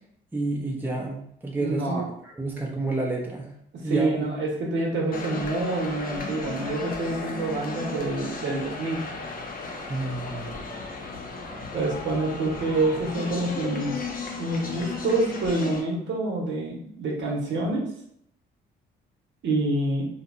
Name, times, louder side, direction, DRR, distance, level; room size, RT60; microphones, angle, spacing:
voice 1, 0.3-2.0 2.4-3.5 3.8-4.3 9.9-10.7, right 2 dB, 10° right, -3 dB, 0.5 m, -29 dB
voice 2, 1.6-2.1 3.8-9.1 11.7-14.0 14.4-17.9 19.4-20.0, right 2 dB, 70° right, -2 dB, 0.8 m, -27 dB
sound 1, 5.1-15.8, left 3 dB, 45° left, 0.5 m, -35 dB
2.9 x 2.0 x 2.4 m, 0.70 s
cardioid pair, 90°, 20 cm